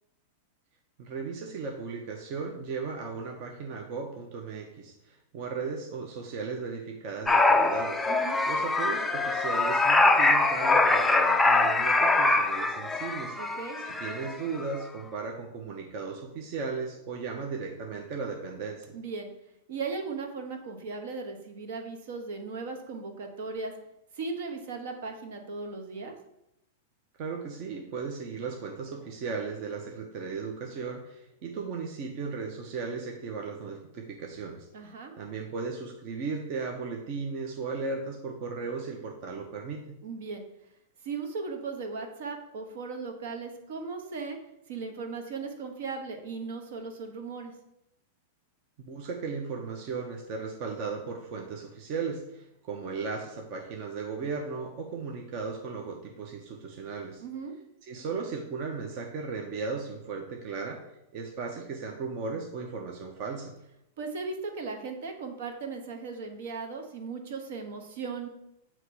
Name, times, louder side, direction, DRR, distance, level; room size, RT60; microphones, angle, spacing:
voice 1, 1.0-8.0 8.5-13.4 13.8-18.9 27.2-40.0 48.8-57.2 57.8-60.8 61.1-63.5, right 4 dB, 40° right, 2 dB, 0.7 m, -36 dB
sound 1, 7.3-14.4 14.6-14.8, left 2 dB, 5° left, 0.3 m, -23 dB
voice 2, 8.0-8.4 13.4-13.8 18.9-19.3 19.7-23.7 24.1-26.1 34.7-35.1 40.0-40.4 41.0-44.4 44.7-47.5 57.2-57.5 64.0-68.3, right 4 dB, 65° right, 4 dB, 1.1 m, -37 dB
7.8 x 2.9 x 4.7 m, 0.84 s
supercardioid pair, 155°, 0 cm